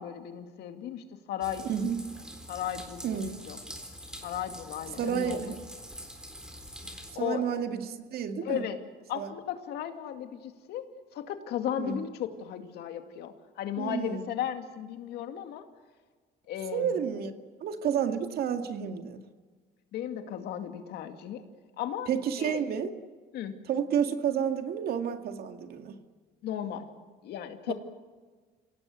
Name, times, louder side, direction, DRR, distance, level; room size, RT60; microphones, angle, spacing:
voice 1, 0.0-1.7 2.5-3.6 4.2-5.5 6.8-7.4 8.4-8.8 9.1-10.8 11.1-15.7 16.5-16.9 19.9-21.4 21.8-22.1 22.4-22.6 23.3-23.5 26.4-26.9 27.2-27.7, left 10 dB, 75° left, 6 dB, 2.4 m, -35 dB
sound 1, 1.4-7.2, equal, 5° right, 3.9 m, -45 dB
voice 2, 1.7-2.1 3.0-3.5 5.0-5.6 7.1-8.6 9.1-9.3 11.8-12.0 13.8-14.3 16.7-17.3 17.6-19.2 22.1-22.9 23.7-26.0 27.7-27.8, right 8 dB, 65° right, 7 dB, 2.1 m, -30 dB
27.0 x 18.0 x 8.0 m, 1.4 s
cardioid pair, 110°, 17 cm